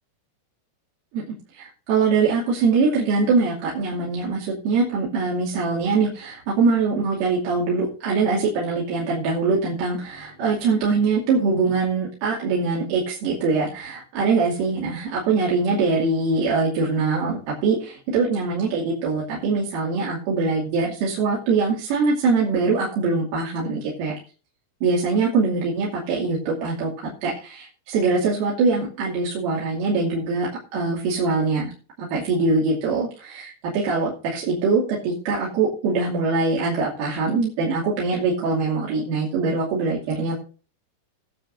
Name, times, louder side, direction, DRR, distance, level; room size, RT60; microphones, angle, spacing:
voice 1, 1.1-24.2 24.8-31.7 32.0-40.4, right 4 dB, 75° right, -6 dB, 5.2 m, -23 dB
22.0 x 7.4 x 2.7 m, 0.38 s
omnidirectional pair, 5.9 m